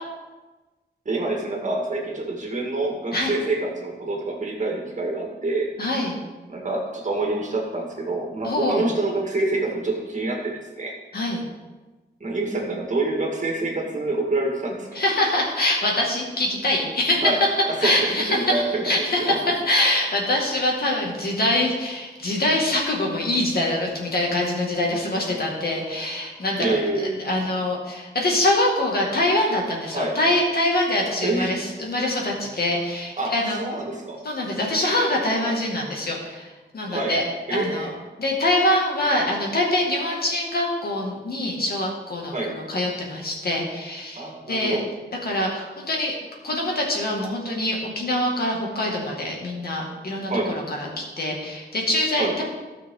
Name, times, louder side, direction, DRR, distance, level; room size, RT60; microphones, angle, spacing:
voice 1, 1.1-5.7 6.5-10.9 12.2-15.0 17.2-17.4 17.8-19.4 26.6-27.2 29.9-30.2 31.2-31.6 33.2-34.2 35.4-35.5 36.9-37.2 37.5-37.9 42.3-42.5 44.2-44.8 50.3-50.5 52.2-52.3, right 2 dB, 40° right, 0 dB, 2.0 m, -26 dB
voice 2, 5.8-6.2 8.4-8.9 11.1-11.4 15.0-17.3 17.8-18.6 18.8-26.7 27.2-33.6 34.2-37.2 37.5-37.9 38.2-44.8 45.2-46.1 46.4-52.4, left 1 dB, 60° left, -1 dB, 2.2 m, -24 dB
16.0 x 6.1 x 3.9 m, 1.2 s
wide cardioid pair, 150°, 18 cm